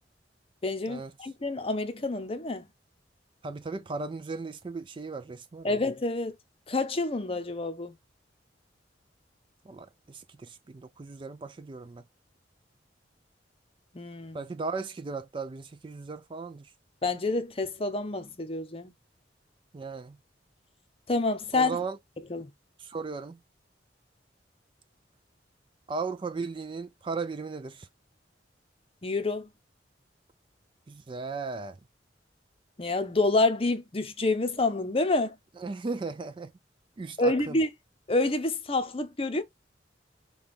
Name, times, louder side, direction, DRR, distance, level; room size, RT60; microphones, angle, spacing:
voice 1, 0.6-2.7 5.6-6.3 6.7-8.0 13.9-14.4 17.0-18.9 21.1-21.7 22.3-22.5 29.0-29.5 32.8-35.3 37.2-37.7 38.1-39.4, left 2 dB, 30° left, 0.7 m, -28 dB
voice 2, 3.4-5.8 9.7-12.0 14.3-16.7 19.7-20.2 21.5-22.0 22.8-23.4 25.9-27.9 30.9-31.8 35.6-36.5 37.0-37.6, right 4 dB, 30° right, 0.3 m, -36 dB
5.7 x 2.3 x 3.4 m
head